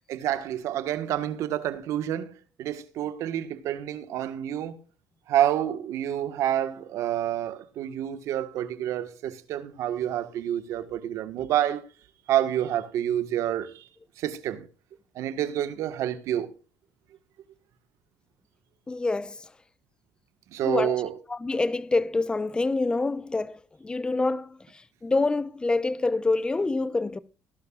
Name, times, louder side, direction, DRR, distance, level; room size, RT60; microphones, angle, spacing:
voice 1, 0.1-2.3 2.6-4.8 5.3-11.8 12.3-13.9 14.2-14.7 15.1-16.5 20.5-21.1, right 11 dB, 70° right, 1.6 m, -28 dB
voice 2, 18.9-19.4 20.6-21.0 21.3-24.6 25.0-27.2, left 3 dB, 15° left, 0.8 m, -26 dB
17.0 x 12.0 x 2.5 m
cardioid pair, 110°, 5 cm